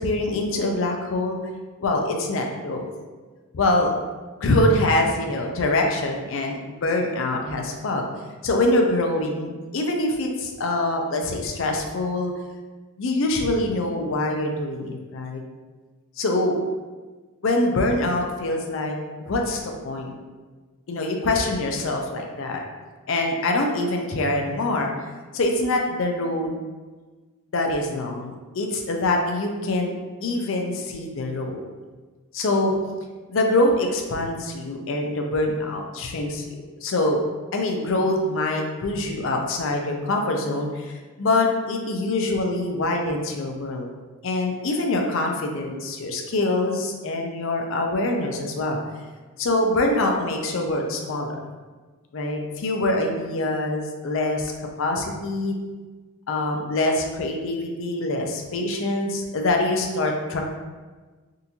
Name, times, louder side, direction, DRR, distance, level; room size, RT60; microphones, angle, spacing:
voice 1, 0.0-1.4 1.8-2.9 3.5-3.9 4.4-8.0 8.4-12.3 13.0-15.4 16.2-16.6 17.4-20.1 20.9-22.6 23.1-24.9 25.3-26.5 27.5-29.9 30.2-31.6 32.3-32.7 33.3-36.4 36.8-37.2 37.5-43.9 44.2-48.8 49.4-51.4 52.1-54.5 54.8-55.5 56.3-60.4, left 2 dB, 60° left, 2 dB, 0.5 m, -24 dB
3.7 x 2.5 x 2.9 m, 1.3 s
head